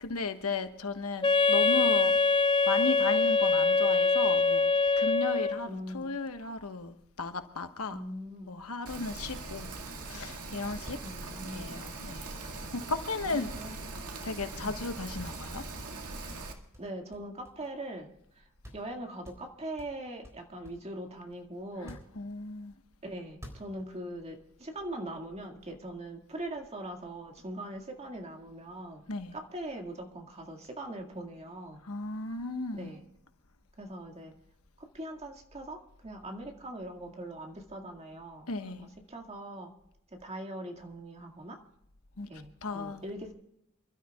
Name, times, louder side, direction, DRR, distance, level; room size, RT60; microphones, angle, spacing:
voice 1, 0.0-2.2 2.7-4.7 5.0-8.0 8.5-9.7 10.0-11.0 11.4-12.3 12.7-13.5 14.2-15.6 21.8-22.7 29.1-29.4 31.8-32.9 38.5-38.8 42.2-42.3 42.6-43.0, left 3 dB, 75° left, 1.3 m, -35 dB
Wind instrument woodwind instrument, 1.2-5.7, left 4 dB, 20° left, 0.5 m, -24 dB
voice 2, 5.6-6.2 7.9-8.5 11.0-11.9 13.2-14.7 16.8-18.1 18.4-18.5 18.7-22.0 23.0-29.0 29.3-31.8 32.7-33.0 33.8-34.3 34.8-39.7 40.1-41.6 42.3-43.3, right 1 dB, 30° right, 2.0 m, -41 dB
Rain, 8.9-16.5, right 3 dB, 90° right, 2.1 m, -41 dB
sound 1, 10.8-12.9 13.5-14.6 14.8-14.9 15.2-15.5 15.8-17.9 18.3-18.4 18.6-18.9 19.2-20.9 21.7-22.7 23.2-24.1, equal, 15° right, 3.7 m, -51 dB
29.0 x 12.5 x 2.4 m
head